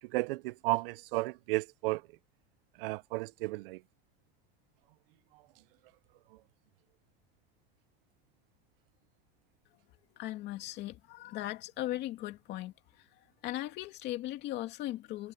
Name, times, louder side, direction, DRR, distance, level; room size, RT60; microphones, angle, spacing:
voice 1, 0.0-2.0 2.8-3.8, right 21 dB, 65° right, 0.4 m, -33 dB
voice 2, 10.2-12.7 13.4-15.3, left 15 dB, 35° left, 2.5 m, -38 dB
supercardioid pair, 180°, 31 cm